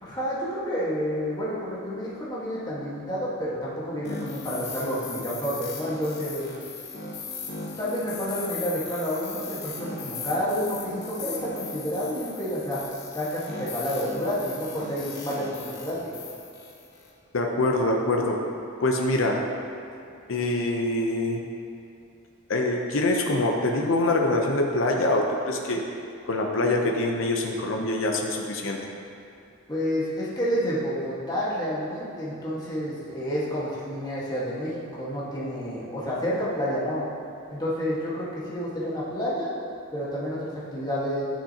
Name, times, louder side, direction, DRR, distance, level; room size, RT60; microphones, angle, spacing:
voice 1, 0.0-6.5 7.8-12.8 13.1-16.1 29.7-37.1 37.5-39.5 39.9-41.2, equal, 20° left, -8 dB, 1.5 m, -29 dB
sound 1, 4.0-17.1, left 4 dB, 50° left, 1.0 m, -38 dB
voice 2, 17.3-18.4 18.8-19.4 20.3-21.4 22.5-25.8 26.3-28.8, left 2 dB, 65° left, 1 dB, 0.7 m, -24 dB
9.9 x 6.0 x 2.8 m, 2.7 s
head